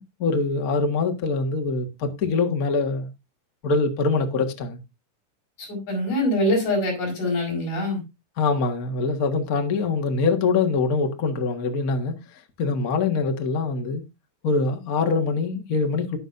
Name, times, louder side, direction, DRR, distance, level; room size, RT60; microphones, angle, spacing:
voice 1, 0.0-3.1 3.6-4.8 8.4-14.0 14.4-16.2, left 4 dB, 40° left, 1.5 m, -24 dB
voice 2, 5.6-8.0, left 1 dB, 90° left, 7.0 m, -24 dB
19.0 x 6.3 x 2.6 m
omnidirectional pair, 3.6 m